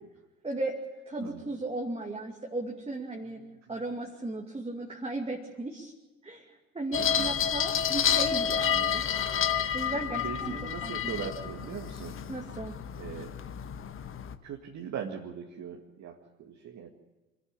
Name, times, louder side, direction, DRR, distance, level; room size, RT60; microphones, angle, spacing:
voice 1, 0.4-0.8 1.1-3.4 3.7-5.9 6.2-9.0 9.7-11.1 12.3-12.8, right 2 dB, 15° right, 0 dB, 2.5 m, -36 dB
voice 2, 3.2-3.6 7.0-7.3 9.9-12.2 13.0-13.3 14.4-16.9, right 7 dB, 40° right, 2 dB, 2.1 m, -40 dB
sound 1, 6.9-14.4, left 8 dB, 30° left, 1.3 m, -30 dB
26.0 x 13.5 x 8.8 m, 1.2 s
figure-of-eight pair, 70°, 42 cm